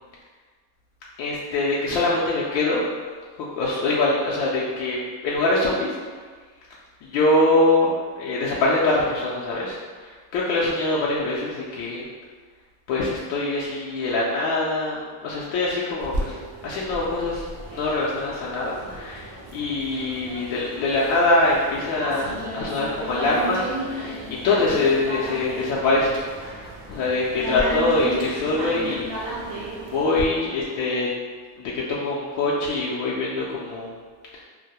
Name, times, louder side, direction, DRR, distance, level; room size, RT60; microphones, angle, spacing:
voice 1, 1.2-2.8 3.4-5.0 5.2-5.9 7.0-7.9 8.2-12.0 12.9-16.4 16.6-24.2 24.4-26.2 26.9-29.1 29.5-31.1 31.6-33.9, left 2 dB, 85° left, -6 dB, 0.6 m, -23 dB
sound 1, 16.0-30.2, right 1 dB, 55° right, 0.5 m, -34 dB
2.2 x 2.1 x 2.8 m, 1.5 s
cardioid pair, 145°, 43 cm